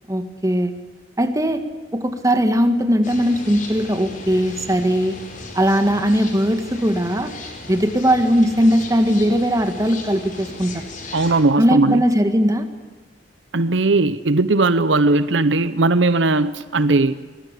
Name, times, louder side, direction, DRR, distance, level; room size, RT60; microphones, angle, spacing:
voice 1, 0.1-0.7 1.2-1.6 1.9-5.1 5.5-7.3 7.7-10.8 11.6-12.7, equal, 20° right, 7 dB, 2.0 m, -19 dB
sound 1, 3.0-11.4, left 2 dB, 45° left, 4.8 m, -37 dB
voice 2, 11.1-12.0 13.5-17.1, right 2 dB, 75° right, 14 dB, 0.8 m, -18 dB
24.0 x 20.0 x 8.3 m, 1.4 s
head